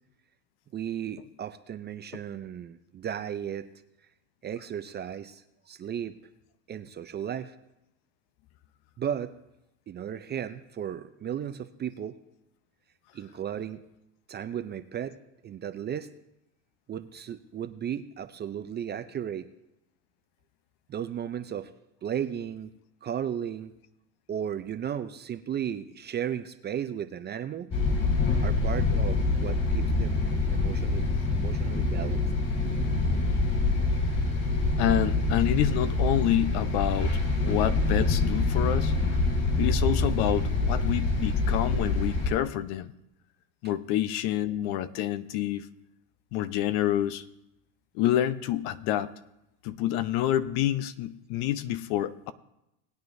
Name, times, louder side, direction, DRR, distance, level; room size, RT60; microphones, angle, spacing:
voice 1, 0.7-3.7 4.4-6.2 6.7-7.5 9.0-9.4 9.9-12.2 13.1-13.8 14.3-15.2 15.4-16.1 16.9-19.5 20.9-21.7 22.0-22.7 23.0-23.7 24.3-27.7 28.4-30.2 30.5-32.2, right 9 dB, 25° right, 10 dB, 0.5 m, -35 dB
sound 1, 27.7-42.3, left 3 dB, 40° left, 3.5 m, -26 dB
voice 2, 34.8-37.2 37.4-38.9 39.6-42.9 43.6-45.7 46.3-47.2 47.9-49.1 49.6-52.3, left 12 dB, 60° left, 14 dB, 0.8 m, -28 dB
19.5 x 9.4 x 2.6 m, 0.87 s
supercardioid pair, 110°, 43 cm